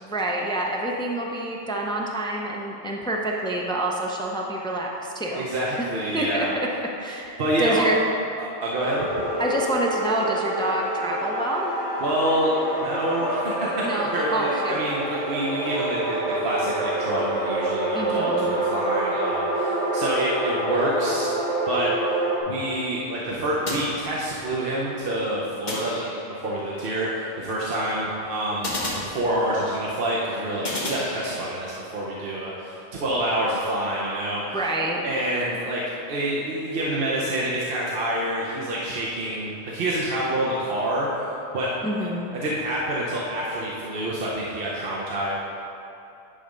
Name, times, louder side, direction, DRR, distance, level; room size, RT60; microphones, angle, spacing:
voice 1, 0.0-5.5 6.1-6.5 7.0-8.1 9.4-11.7 13.8-14.8 17.9-18.5 34.5-35.0 41.8-42.3, right 1 dB, 5° left, -1 dB, 0.4 m, -27 dB
voice 2, 5.3-6.6 7.4-7.8 8.4-9.1 12.0-12.5 12.8-21.3 21.7-21.9 22.5-26.0 26.3-34.6 35.0-35.8 36.1-41.3 41.5-41.7 42.4-45.3, right 1 dB, 55° right, -5 dB, 1.0 m, -27 dB
sound 1, 8.8-22.4, right 1 dB, 90° right, 1.9 m, -27 dB
sound 2, 23.6-24.6 25.7-26.5 28.6-29.7 30.6-31.7, left 1 dB, 40° left, 1.5 m, -33 dB
10.0 x 3.3 x 5.1 m, 2.9 s
omnidirectional pair, 1.2 m